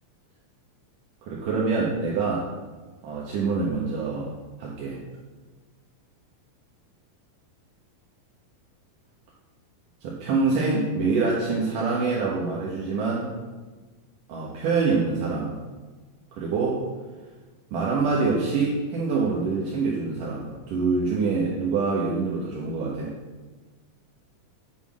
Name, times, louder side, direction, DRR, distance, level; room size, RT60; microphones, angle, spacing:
voice 1, 1.3-2.5 3.0-4.3 4.6-5.0 10.0-13.3 14.3-15.6 16.4-16.8 17.7-23.1, right 4 dB, 80° right, -4 dB, 3.1 m, -25 dB
9.6 x 8.0 x 6.2 m, 1.3 s
omnidirectional pair, 3.7 m